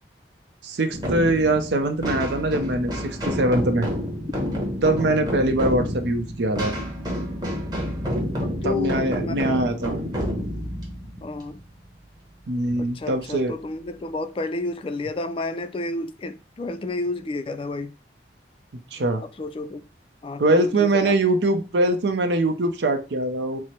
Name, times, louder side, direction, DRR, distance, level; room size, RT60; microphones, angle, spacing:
voice 1, 0.6-3.9 4.8-6.7 8.6-10.0 12.5-13.5 18.9-19.2 20.4-23.6, right 2 dB, 80° right, 0.6 m, -22 dB
sound 1, 0.9-12.3, equal, 25° right, 1.1 m, -29 dB
voice 2, 8.4-9.5 11.2-11.6 12.8-17.9 19.4-19.8 20.2-21.1, left 2 dB, 30° left, 0.3 m, -31 dB
4.6 x 2.0 x 4.3 m
head